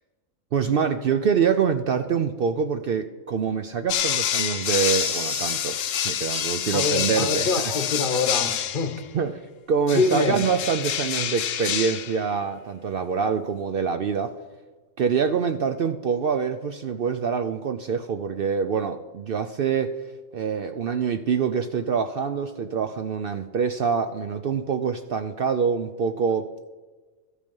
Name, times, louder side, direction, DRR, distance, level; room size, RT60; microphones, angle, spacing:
voice 1, 0.5-7.5 9.1-9.3 9.7-14.3 15.0-19.9 20.3-26.5, right 6 dB, 60° right, 0.7 m, -25 dB
sound 1, 3.9-9.0 9.9-12.2, left 9 dB, 80° left, 1.1 m, -27 dB
Crying sobbing, 4.2-5.7 6.3-6.8 7.1-7.2 7.6-7.7 8.2-8.4 8.6-8.7, equal, 5° right, 0.6 m, -37 dB
voice 2, 6.7-9.1 9.9-10.4, left 4 dB, 45° left, 1.0 m, -25 dB
13.5 x 8.3 x 5.3 m
omnidirectional pair, 1.3 m